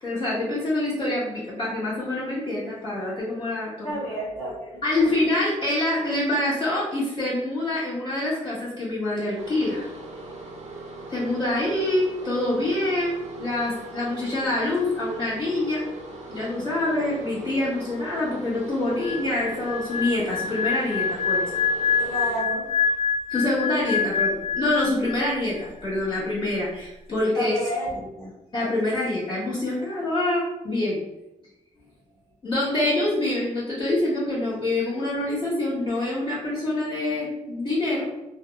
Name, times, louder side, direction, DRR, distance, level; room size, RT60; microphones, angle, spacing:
voice 1, 0.0-4.0 4.8-9.9 11.1-15.8 16.3-21.4 23.3-27.6 28.5-31.0 32.4-38.1, left 2 dB, 40° left, -8 dB, 1.2 m, -26 dB
voice 2, 3.8-5.3 22.0-23.0 27.3-28.3, right 1 dB, 20° left, -8 dB, 1.2 m, -32 dB
sound 1, 9.4-22.4, right 2 dB, 55° right, 0.5 m, -40 dB
sound 2, 19.0-25.4 25.6-25.9, left 6 dB, 60° left, 0.6 m, -26 dB
2.8 x 2.1 x 2.3 m, 0.93 s
cardioid pair, 105°, 14 cm